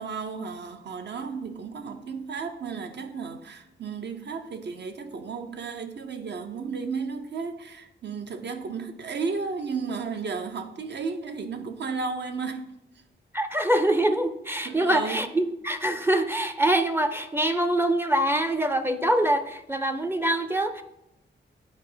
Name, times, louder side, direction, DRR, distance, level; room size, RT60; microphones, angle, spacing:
voice 1, 0.0-12.7 14.6-15.3, right 5 dB, 60° right, 0.8 m, -33 dB
voice 2, 13.3-20.8, right 1 dB, 10° right, 0.5 m, -24 dB
9.2 x 4.6 x 5.1 m
wide cardioid pair, 125°, 20 cm